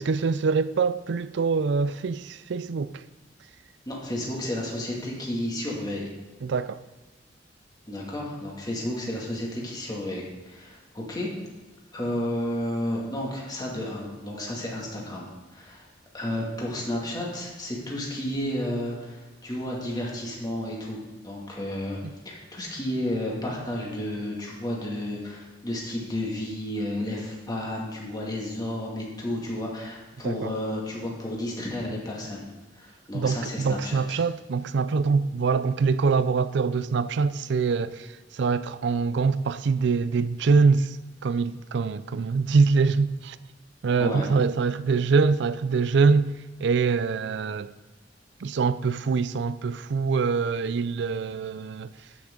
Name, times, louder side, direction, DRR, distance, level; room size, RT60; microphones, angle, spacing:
voice 1, 0.0-3.0 6.4-6.8 30.2-30.5 33.1-41.0 41.2-43.4 43.8-46.3 46.6-47.7 48.4-51.9, right 4 dB, 70° right, 0.4 m, -24 dB
voice 2, 3.9-6.1 7.9-11.3 11.9-15.9 16.1-22.0 22.3-32.4 32.8-34.2 44.0-44.3, left 1 dB, 20° left, 2.2 m, -32 dB
13.5 x 6.2 x 3.8 m
head